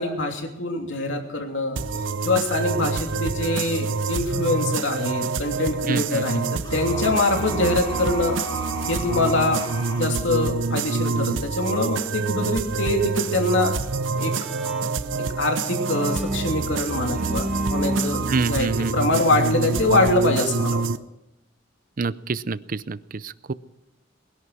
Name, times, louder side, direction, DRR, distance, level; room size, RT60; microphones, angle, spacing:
voice 1, 0.0-1.8 2.2-6.4 6.7-8.4 8.9-9.6 10.0-13.7 14.2-14.3 15.4-20.9, left 2 dB, 75° left, 3 dB, 3.0 m, -24 dB
sound 1, 1.8-21.0, right 4 dB, 85° right, 0.7 m, -27 dB
voice 2, 5.9-6.6 18.3-19.1 22.0-23.5, right 4 dB, 45° right, 17 dB, 0.6 m, -28 dB
sound 2, 6.6-10.1, left 1 dB, 25° left, 5.2 m, -35 dB
Bowed string instrument, 13.9-19.9, equal, ahead, 1.2 m, -33 dB
20.5 x 11.0 x 6.2 m, 0.92 s
head